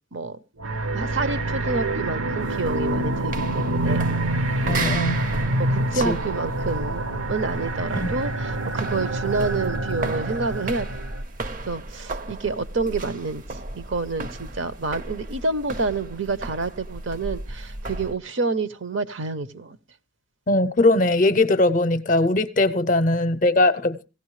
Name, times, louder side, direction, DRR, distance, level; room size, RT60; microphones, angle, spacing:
sound 1, 0.6-11.2, right 2 dB, 85° right, 1.1 m, -26 dB
voice 1, 0.9-4.1 4.6-5.0 5.6-7.0 7.3-10.9 11.7-19.8, right 3 dB, 65° right, 0.8 m, -28 dB
sound 2, 2.4-18.2, right 2 dB, 40° right, 0.6 m, -35 dB
voice 2, 4.7-5.2 6.0-6.2 8.0-8.1 20.5-24.1, left 2 dB, 40° left, 0.6 m, -20 dB
17.5 x 16.0 x 3.2 m
head